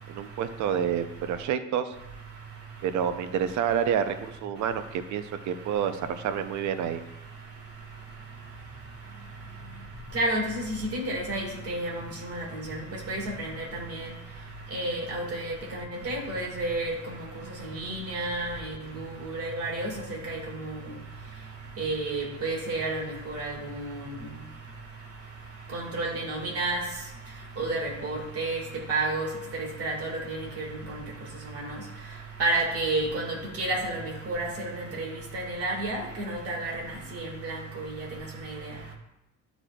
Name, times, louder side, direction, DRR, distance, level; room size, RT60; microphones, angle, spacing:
voice 1, 0.1-1.9 2.8-7.0, right 8 dB, 75° right, 9 dB, 0.6 m, -28 dB
voice 2, 10.1-10.6 10.9-11.9 12.2-12.8 13.1-13.5 13.9-14.1 14.7-16.9 17.8-18.7 19.0-19.9 20.3-20.4 21.8-23.9 25.7-26.8 27.6-28.6 28.9-29.3 29.8-30.6 32.4-33.3 33.6-34.0 34.3-34.5 35.0-36.7 37.2-37.8, right 2 dB, 50° right, 0 dB, 1.8 m, -30 dB
11.5 x 4.0 x 2.3 m, 0.89 s
cardioid pair, 130°, 30 cm